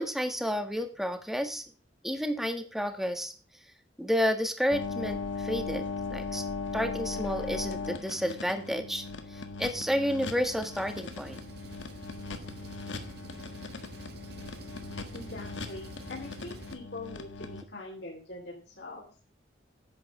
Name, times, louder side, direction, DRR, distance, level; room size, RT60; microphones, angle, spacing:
voice 1, 0.0-1.6 2.0-3.3 4.0-6.4 6.7-9.0 9.3-11.4, equal, ahead, 6 dB, 1.5 m, -31 dB
sound 1, 4.7-17.6, left 3 dB, 85° left, 1.6 m, -38 dB
Engine, 10.7-16.7, right 1 dB, 60° right, 1.8 m, -47 dB
voice 2, 15.1-19.0, left 2 dB, 60° left, -2 dB, 3.1 m, -43 dB
11.0 x 8.5 x 4.9 m, 0.38 s
head